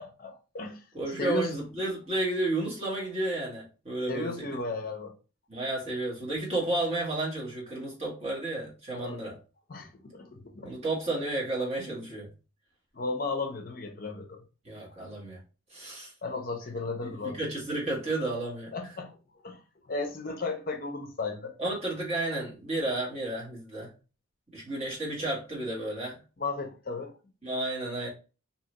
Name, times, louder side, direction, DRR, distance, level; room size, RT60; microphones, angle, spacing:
voice 1, 0.0-0.8 1.2-1.5 4.1-5.1 8.9-9.2 9.7-10.8 12.9-14.4 16.2-17.4 18.7-19.2 19.4-21.5 26.4-27.1, left 3 dB, 45° left, 0.6 m, -35 dB
voice 2, 0.9-4.4 5.5-9.4 10.6-12.3 14.6-15.4 15.7-16.1 17.0-18.7 21.6-23.9 24.5-26.2 27.4-28.1, right 2 dB, 30° right, 1.2 m, -32 dB
2.8 x 2.4 x 2.9 m
head